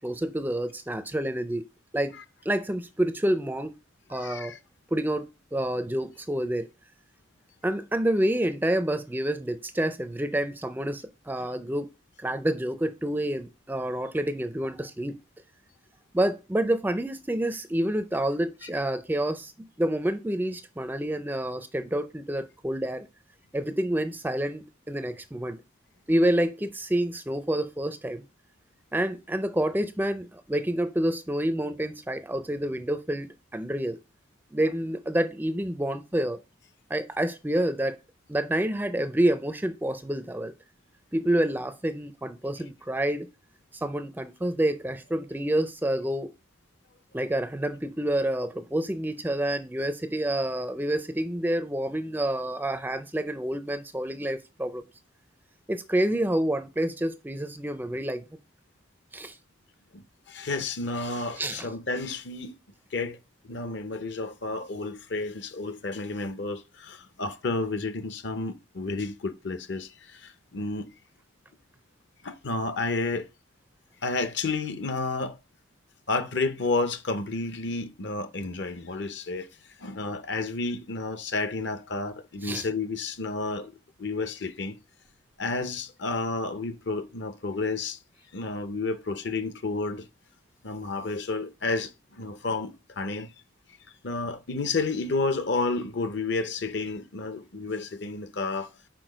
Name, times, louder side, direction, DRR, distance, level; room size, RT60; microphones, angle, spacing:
voice 1, 0.0-1.6 1.9-2.2 2.5-3.8 4.1-4.5 4.9-6.7 7.6-11.9 12.2-15.2 16.1-23.1 23.5-25.6 26.1-28.2 28.9-34.0 34.5-36.4 36.9-38.0 38.3-40.5 41.1-43.3 43.7-46.3 47.1-54.8 55.7-58.2 59.1-59.4 61.4-61.7 82.4-82.7, right 1 dB, 10° right, 0.4 m, -28 dB
voice 2, 4.1-4.6 18.6-18.7 60.3-62.6 62.9-63.2 63.4-70.9 72.2-73.3 74.0-75.4 76.1-79.5 79.8-83.7 84.0-84.8 85.4-88.0 88.3-90.0 90.6-93.3 94.0-98.7, left 3 dB, 60° left, 0.8 m, -31 dB
6.1 x 4.8 x 5.0 m
head